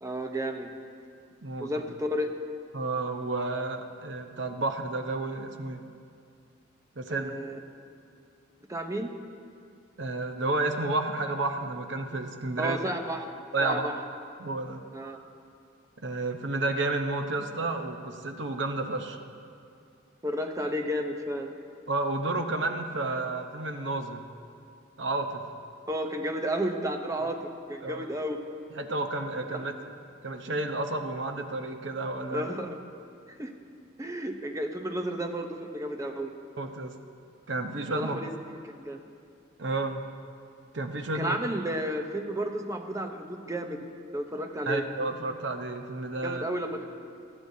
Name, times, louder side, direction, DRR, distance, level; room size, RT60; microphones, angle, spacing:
voice 1, 0.0-0.7 1.6-2.3 7.1-7.6 8.7-9.1 12.6-13.9 14.9-15.2 20.2-21.5 25.9-28.4 29.5-29.6 32.3-32.8 33.4-33.5 34.0-36.3 37.9-38.3 38.6-39.0 41.1-43.9 44.1-44.9 46.2-46.8, equal, 15° right, 4 dB, 0.7 m, -32 dB
voice 2, 2.7-5.8 7.0-7.3 10.0-12.8 13.5-13.9 14.4-14.8 16.0-19.2 21.9-24.2 25.0-25.4 27.2-27.3 27.8-28.1 28.8-29.7 30.2-32.5 36.6-36.9 37.5-38.2 39.6-40.0 40.7-41.3 44.7-46.4, right 2 dB, 60° right, 5 dB, 0.9 m, -31 dB
20.0 x 13.0 x 2.8 m, 2.4 s
head